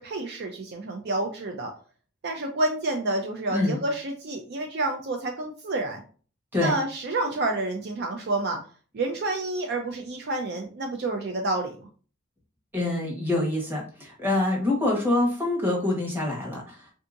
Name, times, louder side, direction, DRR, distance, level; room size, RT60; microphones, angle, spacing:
voice 1, 0.0-1.7 2.2-6.0 6.6-8.6 8.9-11.7, right 2 dB, 50° right, 3 dB, 0.4 m, -29 dB
voice 2, 12.7-16.8, left 2 dB, 10° right, -3 dB, 1.1 m, -25 dB
3.5 x 2.8 x 2.5 m, 0.40 s
head